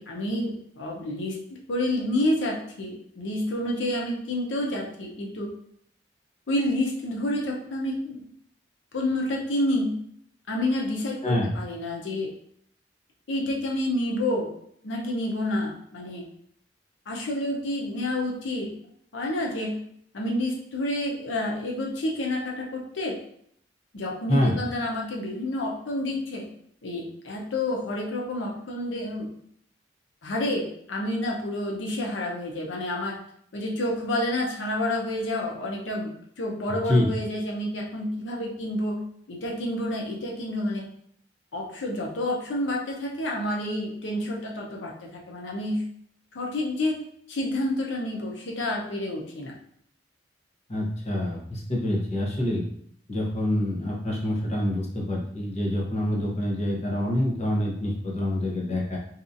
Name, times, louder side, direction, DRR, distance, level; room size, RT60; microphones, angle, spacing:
voice 1, 0.0-1.4 1.7-5.5 6.5-8.2 8.9-9.9 10.5-12.3 13.3-14.5 14.8-16.2 17.1-18.7 19.1-19.8 20.1-23.2 23.9-26.4 26.8-29.3 30.2-33.1 33.5-39.0 39.3-40.8 41.5-45.8 46.3-47.0 47.3-49.5, left 1 dB, 90° left, -1 dB, 0.6 m, -29 dB
voice 2, 50.7-52.6 53.1-59.0, left 1 dB, 40° left, -3 dB, 0.8 m, -26 dB
2.7 x 2.3 x 2.6 m, 0.67 s
head